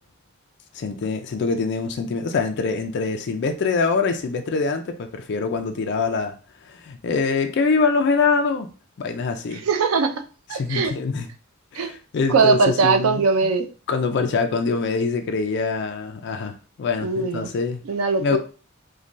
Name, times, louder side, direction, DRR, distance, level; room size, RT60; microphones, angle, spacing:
voice 1, 0.7-6.4 6.7-8.7 9.0-9.6 10.5-11.3 11.7-13.2 13.9-17.8 18.2-18.4, left 4 dB, 55° left, 0.4 m, -24 dB
voice 2, 9.5-10.1 10.5-10.9 11.7-11.9 12.3-13.7 17.0-17.5 17.9-18.4, right 4 dB, 90° right, 0.4 m, -20 dB
3.1 x 2.2 x 2.6 m
head